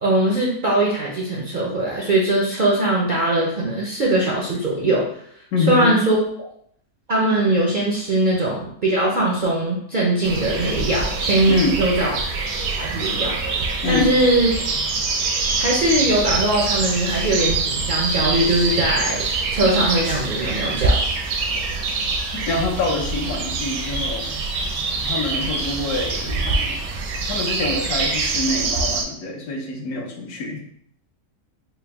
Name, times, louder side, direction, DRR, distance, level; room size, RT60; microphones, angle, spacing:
voice 1, 0.0-5.0 5.7-6.2 7.1-12.2 12.8-13.4 13.9-14.5 15.6-21.0, right 1 dB, 60° right, -4 dB, 0.5 m, -20 dB
voice 2, 5.5-5.9 11.5-11.8 13.8-14.2 22.5-24.3 25.0-26.8 27.3-30.6, left 3 dB, 80° left, 0 dB, 1.2 m, -25 dB
sound 1, 10.2-29.0, right 3 dB, 80° right, 1.1 m, -24 dB
4.4 x 2.0 x 3.3 m, 0.68 s
omnidirectional pair, 1.6 m